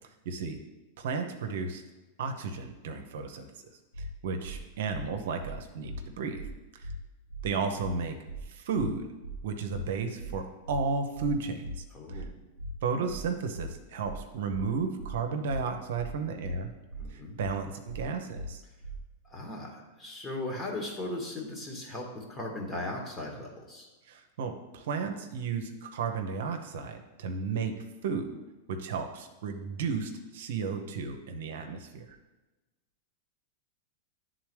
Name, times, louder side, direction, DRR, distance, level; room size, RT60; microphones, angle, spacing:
voice 1, 0.2-0.6 1.0-1.8 2.2-3.5 4.0-6.4 6.7-6.9 7.4-8.2 8.5-9.1 9.4-12.2 12.8-16.7 17.1-18.6 24.1-27.8 28.0-28.3 28.7-32.1, right 5 dB, 70° right, 6 dB, 0.7 m, -33 dB
sound 1, 3.9-4.1 4.4-4.6 4.9-5.1 5.4-5.5 5.9-6.0 6.3-6.5 6.8-7.0 7.3-7.5 7.8-7.9 8.3-8.4 8.7-8.9 9.2-9.4 9.7-9.9 10.2-10.3 10.7-10.8 11.1-11.3 11.6-11.8 12.1-12.3 12.6-12.7 13.1-13.2 13.5-13.7 14.0-14.2 14.5-14.7 15.0-15.1 15.5-15.6 15.9-16.1 16.4-16.6 16.9-17.1 17.4-17.5 17.9-18.0 18.3-18.5 18.8-19.0, right 1 dB, 90° left, 0.9 m, -39 dB
voice 2, 11.9-12.3 17.0-17.4 19.3-23.9, left 2 dB, 20° left, -1 dB, 1.7 m, -38 dB
10.0 x 3.8 x 3.3 m, 1.1 s
hypercardioid pair, 110°, 0 cm